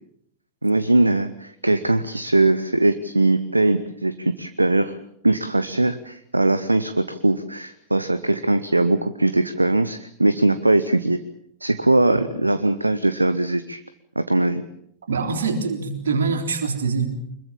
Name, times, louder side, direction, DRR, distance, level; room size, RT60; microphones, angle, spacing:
voice 1, 0.6-5.0 5.2-11.2 11.6-13.8 14.1-14.6, right 2 dB, 85° right, 13 dB, 0.9 m, -20 dB
voice 2, 15.1-17.1, right 4 dB, 65° right, 5 dB, 3.7 m, -24 dB
24.5 x 22.0 x 7.2 m, 0.72 s
figure-of-eight pair, 90°, 0 cm